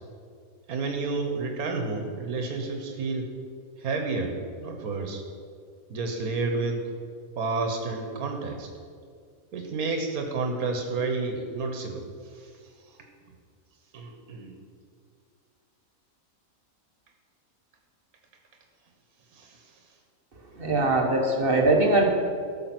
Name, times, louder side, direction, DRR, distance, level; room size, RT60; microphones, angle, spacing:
voice 1, 0.7-3.3 3.8-4.3 4.6-5.2 5.9-6.9 7.4-8.7 9.5-12.1 12.3-12.5 12.9-13.0 13.9-14.5 19.3-19.6, right 3 dB, 90° right, 3 dB, 1.5 m, -30 dB
voice 2, 20.6-22.1, right 2 dB, 40° right, 1 dB, 1.4 m, -21 dB
13.5 x 6.2 x 6.0 m, 2.1 s
omnidirectional pair, 1.5 m